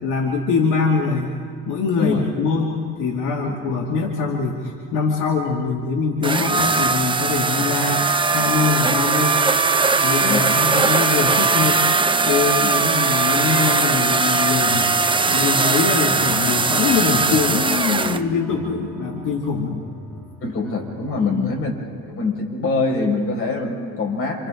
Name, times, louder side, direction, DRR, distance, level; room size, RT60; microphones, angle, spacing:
voice 1, 0.0-1.3 1.7-9.4 9.9-11.9 12.2-14.9 15.3-19.8 21.1-21.6, left 5 dB, 75° left, -2 dB, 2.6 m, -23 dB
voice 2, 2.0-2.3 3.4-3.6 10.2-10.5 12.6-12.8 20.4-21.7 22.1-24.5, left 3 dB, 45° left, 0 dB, 5.8 m, -24 dB
sound 1, 6.2-18.2, right 4 dB, 15° right, 0.8 m, -19 dB
sound 2, 14.5-21.3, equal, 5° left, 3.6 m, -39 dB
29.0 x 28.0 x 3.9 m, 2.3 s
cardioid pair, 105°, 31 cm